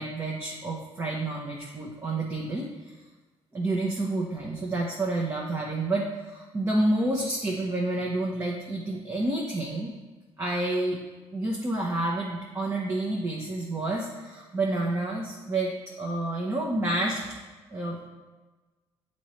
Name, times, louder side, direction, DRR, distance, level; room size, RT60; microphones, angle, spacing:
voice 1, 0.0-2.9 3.5-9.9 10.4-11.0 11.3-17.2 17.7-18.1, right 2 dB, 25° right, -3 dB, 0.9 m, -29 dB
7.9 x 3.0 x 4.4 m, 1.2 s
cardioid pair, 90°, 11 cm